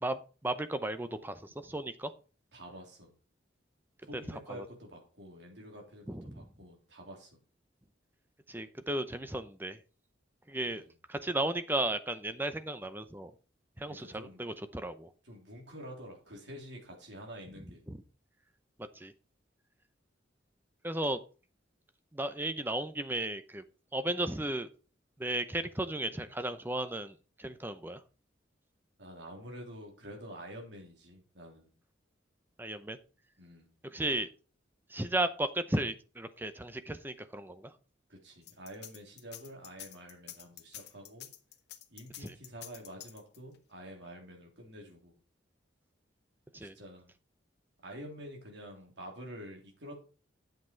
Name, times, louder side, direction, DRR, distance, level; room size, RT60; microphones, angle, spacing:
voice 1, 0.0-2.1 6.1-6.4 8.5-9.8 10.5-10.8 11.1-13.3 13.8-15.1 17.9-18.0 19.0-19.1 20.8-21.2 22.1-23.6 23.9-24.7 25.2-28.0 32.6-33.0 33.9-34.3 34.9-37.7 42.2-42.3 46.5-46.7, right 1 dB, 10° right, 11 dB, 0.7 m, -34 dB
voice 2, 2.5-3.1 4.0-7.4 10.6-11.0 13.9-14.4 15.2-17.8 29.0-31.7 33.4-33.7 38.1-41.3 41.9-45.2 46.6-47.1 47.8-50.0, equal, 65° right, 0 dB, 3.4 m, -48 dB
sound 1, 38.4-43.6, left 12 dB, 60° left, 1.1 m, -48 dB
9.2 x 7.7 x 4.5 m, 0.36 s
head